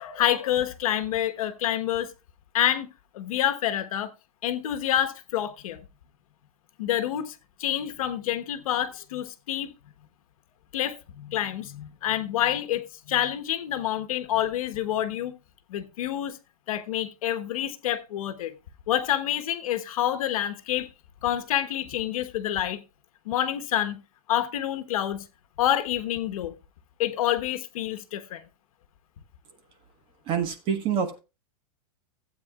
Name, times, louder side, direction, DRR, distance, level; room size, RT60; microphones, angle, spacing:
voice 1, 0.0-2.1 2.5-2.9 3.1-4.1 4.4-5.8 6.8-9.7 10.7-15.3 15.7-16.4 16.7-18.5 18.9-20.9 21.2-22.8 23.2-24.0 24.3-25.2 25.6-26.5 27.0-28.4, left 11 dB, 70° left, 1.2 m, -27 dB
voice 2, 30.3-31.2, right 7 dB, 25° right, 1.3 m, -26 dB
15.5 x 8.4 x 2.4 m
supercardioid pair, 165°, 19 cm